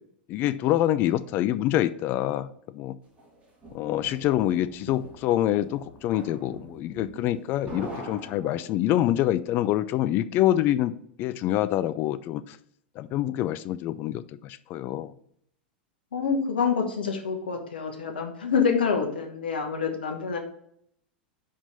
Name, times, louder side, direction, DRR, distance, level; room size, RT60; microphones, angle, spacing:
voice 1, 0.3-2.5 2.7-2.9 3.7-12.6 13.0-15.1, left 13 dB, 40° left, 0.4 m, -26 dB
sound 1, 3.2-9.0, right 1 dB, 25° right, 2.6 m, -43 dB
voice 2, 16.1-20.4, left 6 dB, 75° left, 1.3 m, -27 dB
5.3 x 5.0 x 5.5 m
figure-of-eight pair, 90°, 5 cm